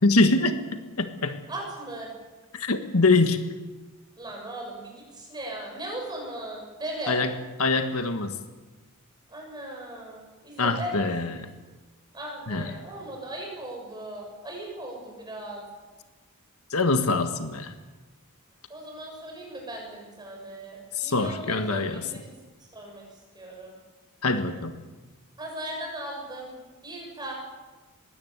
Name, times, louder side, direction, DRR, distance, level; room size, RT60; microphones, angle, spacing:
voice 1, 0.0-0.6 1.0-1.4 2.5-3.4 7.1-7.3 7.6-8.3 10.6-11.5 12.5-12.7 16.7-17.7 21.0-22.0 24.2-24.7, left 3 dB, 75° left, 8 dB, 1.6 m, -24 dB
voice 2, 1.5-2.1 4.2-7.2 9.3-11.4 12.1-15.7 18.7-22.3 22.7-23.7 25.4-27.3, right 1 dB, 20° right, -1 dB, 7.3 m, -38 dB
21.5 x 17.0 x 8.2 m, 1.2 s
head